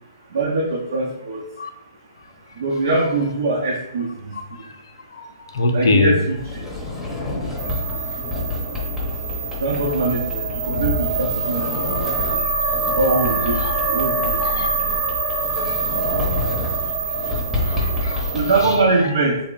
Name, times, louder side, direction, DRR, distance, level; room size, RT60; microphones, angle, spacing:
voice 1, 0.3-1.4 2.6-4.3 5.7-6.4 9.6-12.2 13.0-13.6 13.9-14.6 18.3-19.4, right 3 dB, 65° right, 0.8 m, -22 dB
voice 2, 5.2-6.2 7.9-8.0 13.5-13.7 14.4-14.7 15.7-15.8 17.6-18.8, left 3 dB, 75° left, 0.5 m, -24 dB
Sliding door, 6.3-18.6, left 2 dB, ahead, 0.9 m, -28 dB
sound 1, 7.6-18.8, right 4 dB, 30° right, 0.7 m, -25 dB
3.3 x 2.1 x 3.8 m
hypercardioid pair, 135°, 2 cm